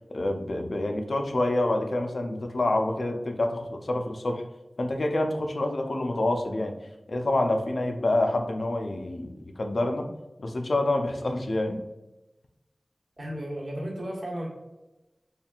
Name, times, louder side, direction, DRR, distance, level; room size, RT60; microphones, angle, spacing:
voice 1, 0.1-4.4 4.8-6.7 7.1-10.1 10.4-11.8, left 2 dB, 75° left, 4 dB, 0.4 m, -27 dB
voice 2, 13.2-14.5, equal, 65° right, -4 dB, 1.3 m, -34 dB
4.4 x 3.1 x 2.4 m, 1.0 s
wide cardioid pair, 70°, 0 cm